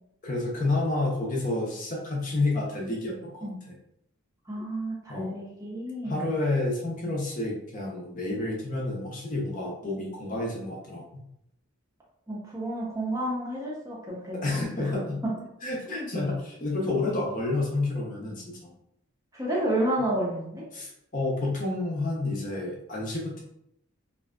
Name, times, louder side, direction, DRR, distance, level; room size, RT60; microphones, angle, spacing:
voice 1, 0.2-3.7 5.1-5.4 6.0-11.0 14.4-15.2 15.6-18.7 20.7-23.4, left 2 dB, 40° left, -2 dB, 0.6 m, -29 dB
voice 2, 4.5-6.3 12.3-14.9 15.2-15.4 15.9-16.1 19.3-20.7, right 1 dB, 15° right, -4 dB, 0.5 m, -31 dB
2.6 x 2.4 x 2.2 m, 0.78 s
head